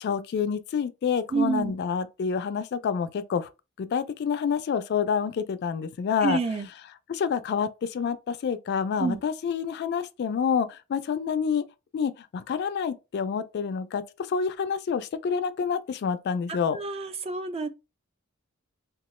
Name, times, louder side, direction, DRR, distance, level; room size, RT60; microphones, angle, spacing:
voice 1, 0.0-3.5 3.8-6.4 7.1-11.6 11.9-14.0 14.3-16.8, left 6 dB, 50° left, 0.3 m, -28 dB
voice 2, 1.3-1.7 6.2-6.7 9.0-9.2 16.7-17.7, right 4 dB, 30° right, 0.3 m, -28 dB
2.9 x 2.3 x 3.0 m
head